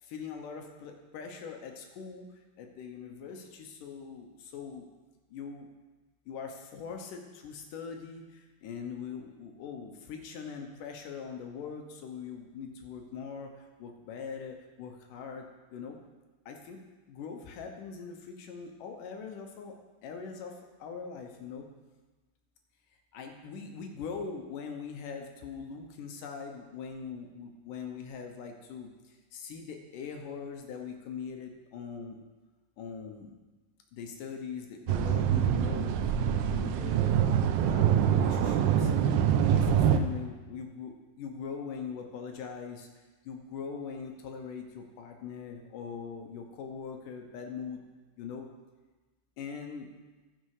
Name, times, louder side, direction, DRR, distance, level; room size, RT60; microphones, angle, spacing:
voice 1, 0.0-2.3 2.6-4.9 5.3-5.7 6.3-16.0 16.5-16.8 17.1-19.8 20.0-21.7 23.1-32.2 32.8-33.3 33.9-36.0 36.2-37.2 37.6-38.9 39.5-42.9 43.2-47.8 48.2-48.5 49.4-49.9, left 6 dB, 70° left, 3 dB, 2.1 m, -42 dB
sound 1, 34.9-40.0, right 9 dB, 90° right, 2.6 m, -25 dB
15.5 x 6.6 x 4.8 m, 1.2 s
omnidirectional pair, 4.6 m